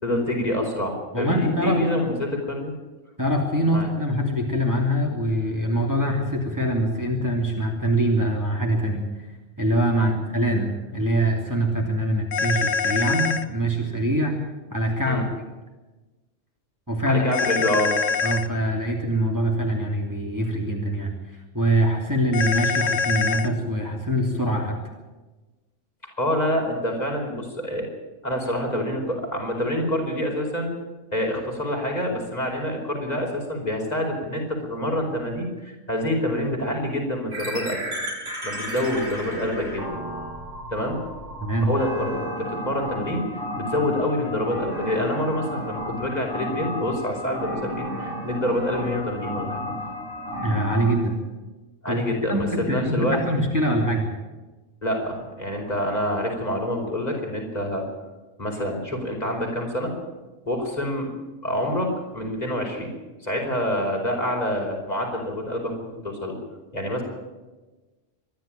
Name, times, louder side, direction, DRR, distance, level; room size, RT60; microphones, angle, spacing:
voice 1, 0.0-2.7 3.7-3.9 10.0-10.1 15.1-15.2 17.1-17.9 26.2-27.9 28.2-30.7 31.1-37.8 38.4-39.8 40.7-41.0 41.7-43.3 43.6-49.6 51.8-53.2 54.8-57.8 58.4-59.9 60.5-61.1 61.4-62.9 63.2-65.7 66.0-66.4 66.7-67.0, left 1 dB, 35° left, 0 dB, 5.2 m, -26 dB
voice 2, 1.1-1.8 3.2-9.3 9.6-14.4 14.7-15.3 16.9-17.2 18.2-24.8 41.4-41.7 50.4-51.2 51.9-52.0 52.3-54.1, right 1 dB, 15° right, -1 dB, 2.8 m, -24 dB
sound 1, 12.3-13.4 17.3-18.5 22.3-23.5, left 5 dB, 85° left, 1.4 m, -24 dB
sound 2, 37.3-50.9, equal, 80° right, 6.0 m, -33 dB
25.0 x 11.5 x 9.0 m, 1.2 s
omnidirectional pair, 1.3 m